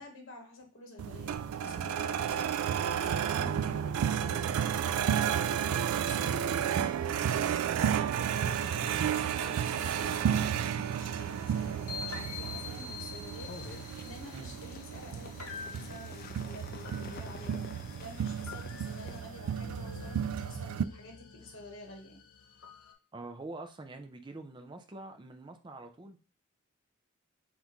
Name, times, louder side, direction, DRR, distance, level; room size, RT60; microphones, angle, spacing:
voice 1, 0.0-22.2, left 1 dB, 60° left, 2 dB, 1.2 m, -50 dB
sound 1, 1.0-20.8, right 9 dB, 85° right, 0.3 m, -32 dB
sound 2, 8.3-19.2, left 5 dB, 45° left, 0.3 m, -50 dB
sound 3, 9.1-22.9, left 5 dB, 75° left, 0.7 m, -48 dB
voice 2, 23.1-26.2, right 2 dB, 20° right, 6 dB, 0.4 m, -45 dB
5.4 x 2.5 x 3.0 m, 0.33 s
head